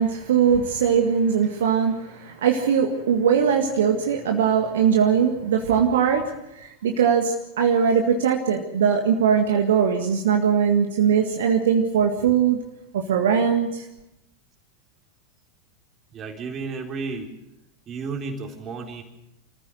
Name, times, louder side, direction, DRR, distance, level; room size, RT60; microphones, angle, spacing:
voice 1, 0.0-12.6 12.9-13.9, right 7 dB, 60° right, 3 dB, 1.8 m, -21 dB
voice 2, 16.1-17.3 17.9-19.0, right 4 dB, 25° right, 2 dB, 3.9 m, -32 dB
26.0 x 14.5 x 7.9 m, 0.87 s
figure-of-eight pair, 90°, 0 cm